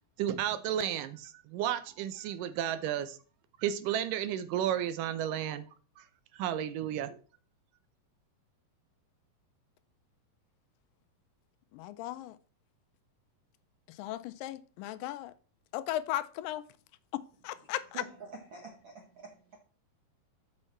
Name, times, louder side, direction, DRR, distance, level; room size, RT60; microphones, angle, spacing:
voice 1, 0.2-3.2 3.6-5.6 6.0-6.1 6.3-7.2, right 10 dB, 80° right, 2.1 m, -32 dB
voice 2, 11.7-12.4 14.0-15.3 15.7-16.6 17.4-17.8, left 13 dB, 80° left, 2.2 m, -36 dB
voice 3, 17.9-19.6, right 2 dB, 60° right, 1.3 m, -47 dB
6.6 x 6.4 x 4.3 m
omnidirectional pair, 4.0 m